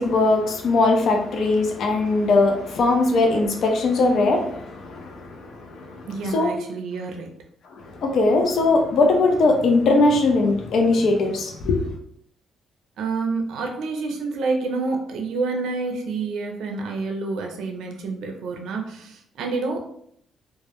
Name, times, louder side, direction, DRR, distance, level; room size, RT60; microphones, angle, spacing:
voice 1, 0.0-6.5 7.7-11.9, left 3 dB, 65° left, 3 dB, 0.4 m, -20 dB
voice 2, 6.1-7.4 13.0-19.9, right 3 dB, 80° right, 3 dB, 0.4 m, -28 dB
2.1 x 2.1 x 2.8 m, 0.68 s
cardioid pair, 90°, 0 cm